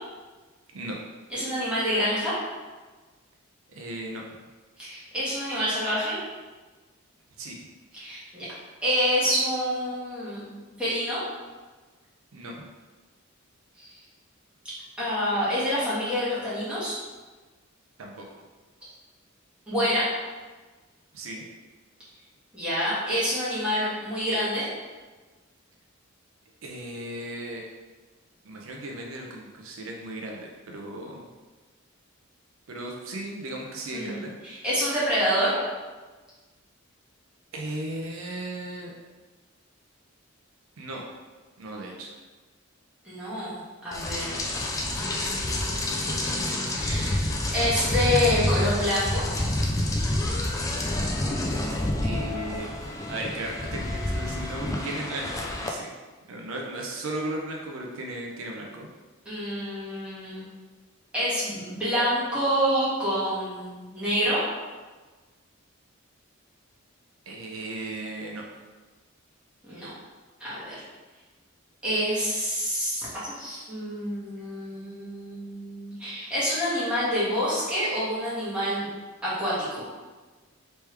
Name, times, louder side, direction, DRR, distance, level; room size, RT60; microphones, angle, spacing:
voice 1, 1.3-2.3 4.8-6.2 7.9-8.5 8.8-11.2 13.8-13.9 15.0-16.9 19.7-20.0 22.5-24.7 33.9-35.5 43.0-44.5 44.9-49.3 59.2-60.5 61.1-64.4 69.6-69.9 70.4-70.7 71.8-78.9 79.2-79.8, equal, 5° right, -11 dB, 1.4 m, -27 dB
voice 2, 3.7-4.2 7.4-7.6 12.3-12.5 18.0-18.3 21.1-21.4 26.6-27.7 28.4-31.3 32.7-34.3 37.5-38.9 40.8-41.1 41.6-42.1 52.0-52.7 53.1-55.9 56.3-58.9 67.3-68.4, right 1 dB, 75° right, 0 dB, 0.5 m, -36 dB
Rain, 43.9-55.7, left 1 dB, 15° left, 0.3 m, -28 dB
3.3 x 3.1 x 3.2 m, 1.3 s
head